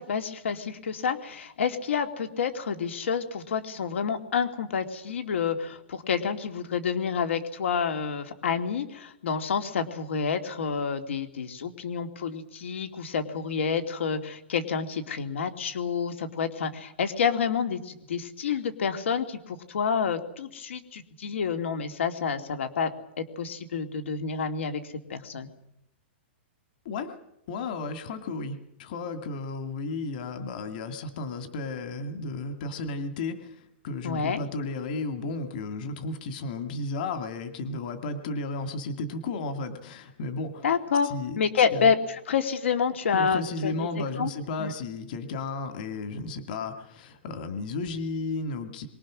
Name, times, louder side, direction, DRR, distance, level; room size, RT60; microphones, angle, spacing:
voice 1, 0.0-22.9 23.2-24.8 25.1-25.5 34.0-34.4 40.6-43.9 44.2-44.3 44.6-44.7, left 6 dB, 85° left, 7 dB, 2.7 m, -28 dB
voice 2, 27.5-40.7 41.0-41.9 43.1-48.9, left 3 dB, 45° left, 8 dB, 2.1 m, -33 dB
27.0 x 24.0 x 6.3 m, 0.82 s
hypercardioid pair, 170°, 6 cm